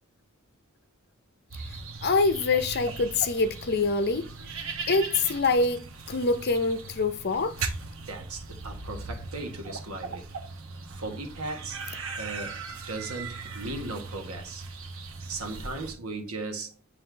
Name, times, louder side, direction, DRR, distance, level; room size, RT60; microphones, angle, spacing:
sound 1, 1.5-15.9, right 4 dB, 70° right, 1.2 m, -39 dB
voice 1, 2.0-4.3 4.9-7.7, left 3 dB, 50° left, 0.7 m, -25 dB
voice 2, 8.1-10.3 10.9-11.8 12.1-14.6 15.3-16.7, right 3 dB, 85° right, 1.5 m, -37 dB
9.1 x 3.4 x 3.4 m
head